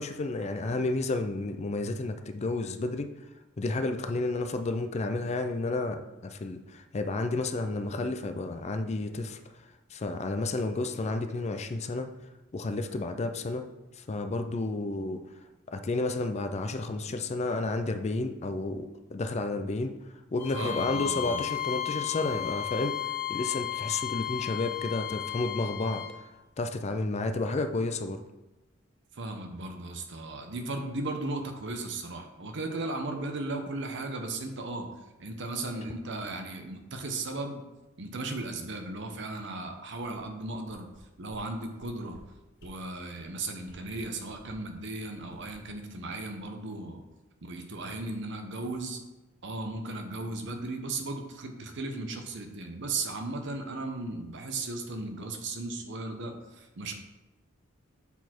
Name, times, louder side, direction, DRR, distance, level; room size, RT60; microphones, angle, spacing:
voice 1, 0.0-3.1 3.6-9.4 9.9-12.1 12.5-13.6 14.0-15.2 15.7-19.9 20.3-26.2 26.6-28.2, left 2 dB, 35° left, 7 dB, 0.4 m, -31 dB
Bowed string instrument, 20.4-26.1, left 12 dB, 10° left, 1.2 m, -34 dB
voice 2, 20.5-21.4 29.1-34.9 35.2-37.6 38.0-40.9 41.2-42.2 42.6-47.0 47.4-49.0 49.4-56.9, right 2 dB, 60° right, 5 dB, 0.9 m, -36 dB
sound 1, 40.9-41.0 41.3-41.4 41.7-42.2 42.6-42.7 43.1-43.3 43.6-44.7 45.1-46.7 47.1-47.2, equal, 55° left, 1.8 m, -55 dB
7.1 x 4.1 x 4.4 m, 1.1 s
head